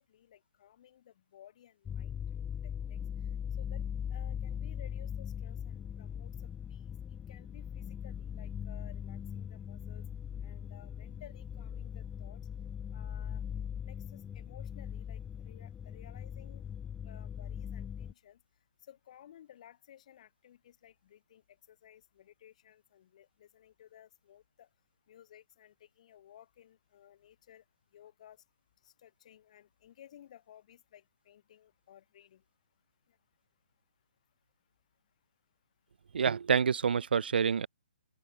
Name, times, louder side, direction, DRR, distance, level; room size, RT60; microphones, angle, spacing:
voice 1, 0.0-3.0 3.6-3.8 4.1-6.3 6.7-10.0 10.4-12.4 12.9-13.4 13.8-16.6 17.0-18.4 18.8-21.4 21.7-24.7 25.1-27.6 27.9-28.4 28.8-32.4, left 11 dB, 40° left, 5.6 m, -57 dB
sound 1, 1.9-18.1, left 8 dB, 10° left, 0.6 m, -40 dB
voice 2, 36.1-37.7, right 6 dB, 80° right, 0.3 m, -27 dB
open air
hypercardioid pair, 160°, 5 cm